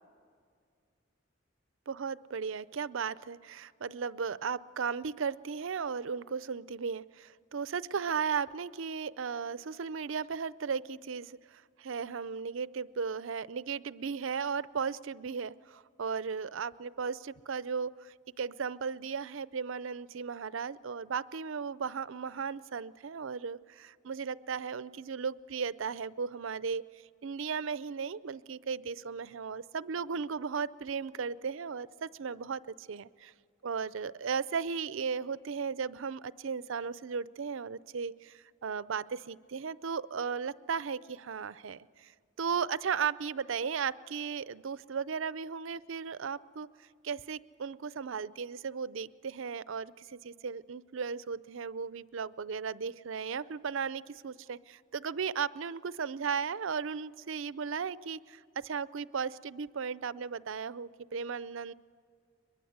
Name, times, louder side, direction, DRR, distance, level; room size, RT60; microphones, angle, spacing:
voice 1, 1.9-26.8 27.2-33.3 33.6-42.1 42.4-46.7 47.0-61.7, right 6 dB, 70° right, 18 dB, 0.5 m, -36 dB
22.5 x 22.0 x 8.0 m, 2.2 s
head